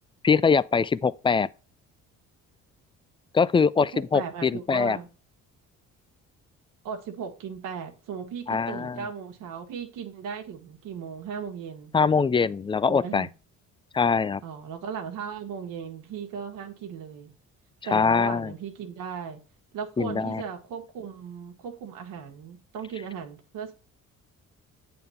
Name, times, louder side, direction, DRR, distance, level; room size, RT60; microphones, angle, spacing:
voice 1, 0.2-1.5 3.3-5.0 8.5-9.0 11.9-13.3 13.9-14.4 17.9-18.5 20.0-20.4, left 5 dB, 15° left, 0.3 m, -23 dB
voice 2, 3.9-5.1 6.8-11.9 12.9-13.3 14.4-17.3 17.8-19.4 19.7-23.7, right 7 dB, 75° right, 1.3 m, -37 dB
7.8 x 3.6 x 5.6 m
supercardioid pair, 75°, 32 cm